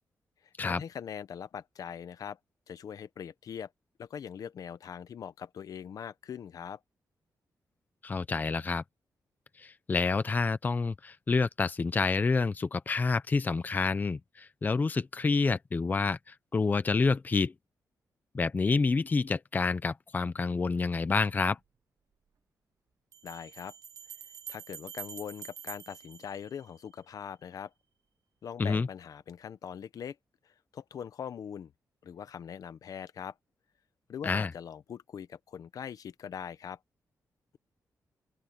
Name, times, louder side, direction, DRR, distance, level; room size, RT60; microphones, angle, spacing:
voice 1, 0.6-2.4 2.7-3.7 4.0-6.8 23.2-23.8 24.5-27.7 28.4-30.2 30.4-31.7 32.0-33.3 34.1-36.8, left 8 dB, 65° left, 1.0 m, -42 dB
voice 2, 8.0-8.8 9.6-17.5 18.3-21.6 28.6-28.9 34.2-34.5, left 4 dB, 25° left, 0.7 m, -28 dB
sound 1, 23.1-27.1, right 9 dB, 55° right, 1.0 m, -47 dB
open air
wide cardioid pair, 145°, 7 cm